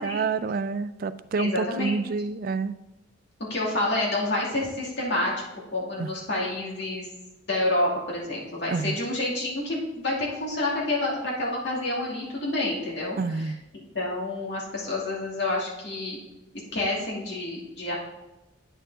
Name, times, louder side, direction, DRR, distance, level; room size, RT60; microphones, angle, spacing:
voice 1, 0.0-2.7 6.0-6.1 8.7-9.0 13.2-13.6, right 4 dB, 45° right, 14 dB, 0.3 m, -28 dB
voice 2, 1.4-1.9 3.5-5.3 5.7-7.1 7.5-16.2 16.7-18.0, left 2 dB, 60° left, -4 dB, 2.6 m, -28 dB
9.1 x 6.6 x 3.9 m, 1.0 s
head